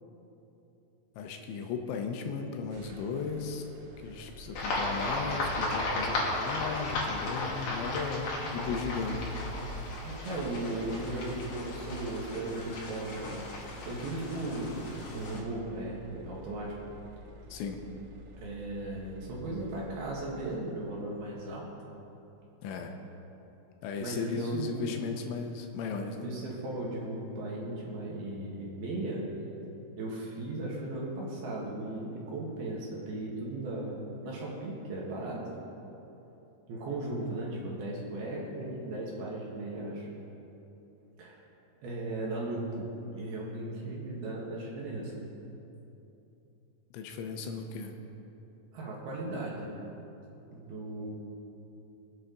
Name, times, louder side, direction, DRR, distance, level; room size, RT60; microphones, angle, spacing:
voice 1, 1.2-3.6 4.0-9.3 17.5-17.8 22.6-22.9 23.8-26.3 46.9-47.9, left 5 dB, 85° left, 4 dB, 3.3 m, -36 dB
sound 1, 2.7-21.0, right 1 dB, 85° right, 3.5 m, -48 dB
sound 2, 4.6-15.4, left 2 dB, 55° left, 3.4 m, -35 dB
voice 2, 10.0-13.4 13.9-14.8 15.1-16.7 18.4-21.7 24.0-25.0 26.2-29.2 30.0-35.5 36.7-40.1 41.2-41.4 41.8-45.1 48.7-49.7 50.5-51.1, right 2 dB, 60° right, -4 dB, 3.4 m, -37 dB
25.0 x 8.7 x 4.1 m, 3.0 s
omnidirectional pair, 5.6 m